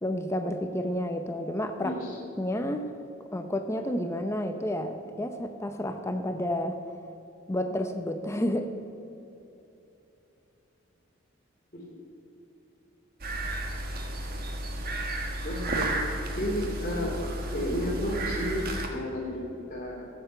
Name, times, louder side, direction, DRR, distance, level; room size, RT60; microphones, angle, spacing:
voice 1, 0.0-1.9 2.4-2.9 3.3-6.8 7.5-8.7, left 1 dB, 15° left, 6 dB, 0.6 m, -30 dB
voice 2, 1.8-2.2 11.7-11.8 15.4-15.9 16.4-17.2 17.5-20.1, equal, 40° left, -2 dB, 3.1 m, -32 dB
sound 1, 13.2-18.9, right 1 dB, 50° right, 1.5 m, -32 dB
14.5 x 8.1 x 6.6 m, 2.9 s
head